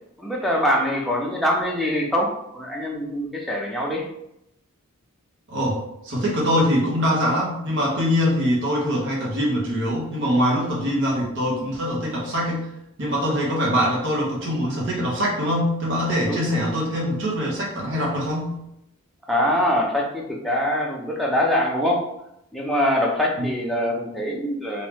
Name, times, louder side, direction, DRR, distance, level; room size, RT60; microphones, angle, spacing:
voice 1, 0.2-4.1 16.3-16.4 19.3-22.0 22.5-24.9, equal, ahead, -3 dB, 0.5 m, -23 dB
voice 2, 5.5-12.7 13.0-18.5 23.4-23.5, equal, 55° right, -3 dB, 1.1 m, -23 dB
3.5 x 2.6 x 3.0 m, 0.80 s
head